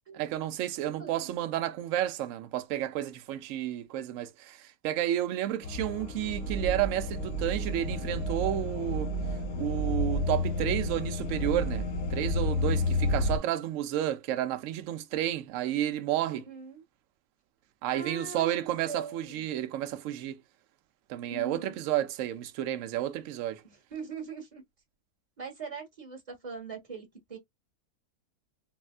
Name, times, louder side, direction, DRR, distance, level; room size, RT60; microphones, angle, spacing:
voice 1, 0.1-9.1 9.6-16.4 17.8-20.4 21.1-23.6, right 12 dB, 70° right, 0.8 m, -31 dB
voice 2, 1.0-1.3 12.6-13.5 16.3-16.8 17.9-18.5 18.9-19.5 21.3-21.8 23.6-24.6 25.4-27.4, right 5 dB, 25° right, 1.2 m, -42 dB
sound 1, 5.6-13.4, left 1 dB, 75° left, 1.2 m, -30 dB
4.3 x 2.1 x 2.3 m
omnidirectional pair, 1.6 m